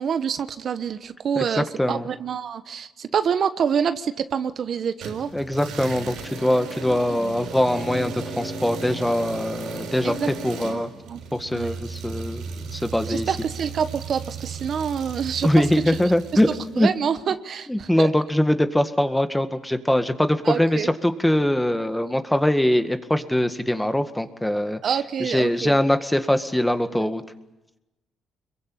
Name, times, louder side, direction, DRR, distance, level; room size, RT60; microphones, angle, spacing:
voice 1, 0.0-5.3 10.0-10.3 10.7-11.2 11.5-11.7 13.1-16.1 16.7-18.1 20.4-20.9 24.8-25.8 27.0-27.1, right 7 dB, 55° right, 11 dB, 1.1 m, -27 dB
sound 1, 5.0-16.8, right 4 dB, 85° right, 6.0 m, -35 dB
voice 2, 5.3-10.2 10.4-10.9 11.3-13.3 15.4-16.9 17.7-24.8 25.2-27.2, left 1 dB, 5° left, 9 dB, 1.8 m, -22 dB
26.0 x 22.5 x 8.7 m, 0.98 s
cardioid pair, 90°, 0 cm